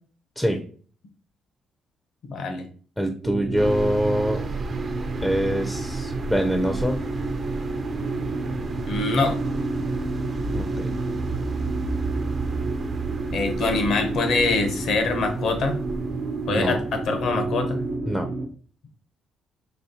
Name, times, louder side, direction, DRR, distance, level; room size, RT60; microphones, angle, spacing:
voice 1, 2.3-2.7 8.9-9.4 13.3-15.8 16.5-17.8, left 3 dB, 70° left, 6 dB, 0.8 m, -24 dB
voice 2, 3.0-4.4 5.2-7.0 10.5-10.9 16.5-16.8 18.1-18.3, equal, 5° left, 5 dB, 0.5 m, -24 dB
sound 1, 3.2-18.5, right 2 dB, 85° right, 0.8 m, -30 dB
sound 2, 3.6-18.0, right 3 dB, 45° right, 0.6 m, -34 dB
4.2 x 3.0 x 2.8 m, 0.43 s
cardioid pair, 90°, 0 cm